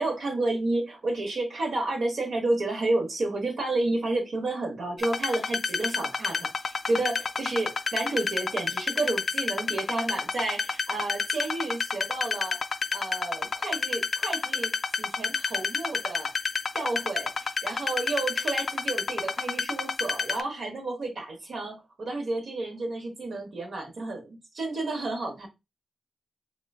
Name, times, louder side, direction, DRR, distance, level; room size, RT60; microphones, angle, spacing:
voice 1, 0.0-12.6 12.9-16.3 16.7-25.5, right 2 dB, 75° right, 1.1 m, -31 dB
sound 1, 5.0-20.4, left 5 dB, 65° left, 0.3 m, -29 dB
3.7 x 3.1 x 2.3 m
cardioid pair, 45°, 0 cm